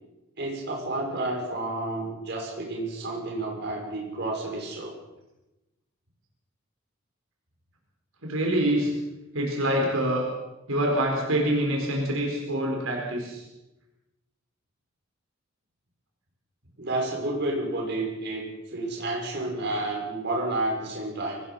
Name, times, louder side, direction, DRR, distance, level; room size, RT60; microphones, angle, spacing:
voice 1, 0.4-4.9 16.8-21.4, right 2 dB, 55° right, 0 dB, 5.8 m, -30 dB
voice 2, 8.2-8.9 9.3-10.3 10.7-13.4, right 1 dB, 80° right, 0 dB, 4.7 m, -25 dB
23.5 x 19.5 x 5.7 m, 1.0 s
head